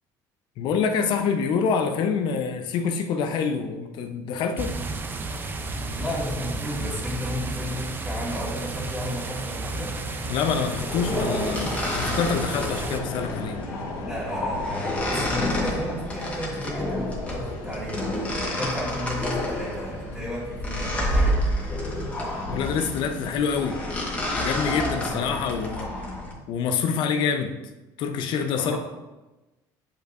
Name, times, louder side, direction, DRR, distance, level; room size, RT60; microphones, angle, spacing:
voice 1, 0.6-4.7 10.3-13.6 22.5-23.8 24.3-25.9 26.5-27.5 28.0-28.8, left 6 dB, 60° left, 7 dB, 0.7 m, -26 dB
sound 1, 4.6-13.0, right 3 dB, 20° right, 0.5 m, -32 dB
voice 2, 5.9-9.9 14.1-18.3 18.6-21.4 25.0-25.4 28.5-28.8, equal, 5° right, -7 dB, 2.1 m, -33 dB
Vehicle, 8.6-25.0, left 2 dB, 85° left, 2.0 m, -40 dB
sound 2, 10.5-26.3, left 1 dB, 15° left, 1.3 m, -29 dB
8.7 x 5.4 x 2.5 m, 1.1 s
cardioid pair, 135°, 9 cm